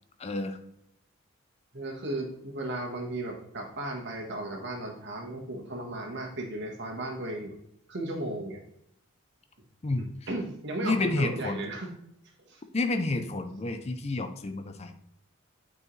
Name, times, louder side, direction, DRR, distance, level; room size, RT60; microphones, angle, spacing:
voice 1, 0.2-0.6 9.8-10.1 10.8-11.7 12.7-14.9, left 2 dB, 30° left, 8 dB, 0.5 m, -30 dB
voice 2, 1.7-7.5 7.9-8.6 10.3-11.9 12.5-12.6, right 1 dB, 55° right, 0 dB, 1.4 m, -35 dB
8.4 x 4.7 x 3.2 m, 0.75 s
head